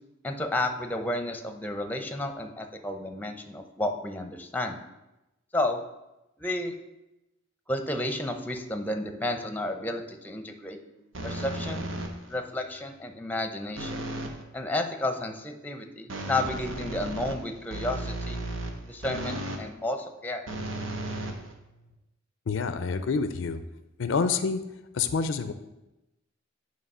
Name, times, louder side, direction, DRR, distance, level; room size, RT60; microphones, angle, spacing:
voice 1, 0.2-4.8 5.5-5.8 6.4-6.7 7.7-10.8 11.2-11.9 12.3-14.1 14.5-18.4 18.8-20.4, left 1 dB, 10° left, 6 dB, 0.6 m, -31 dB
sound 1, 11.1-12.4 13.8-14.4 16.1-19.7 20.5-21.9, right 1 dB, 85° right, 0.9 m, -35 dB
voice 2, 22.5-23.6 24.0-24.6 24.9-25.5, left 5 dB, 70° left, 11 dB, 0.4 m, -27 dB
9.4 x 3.2 x 5.4 m, 0.95 s
head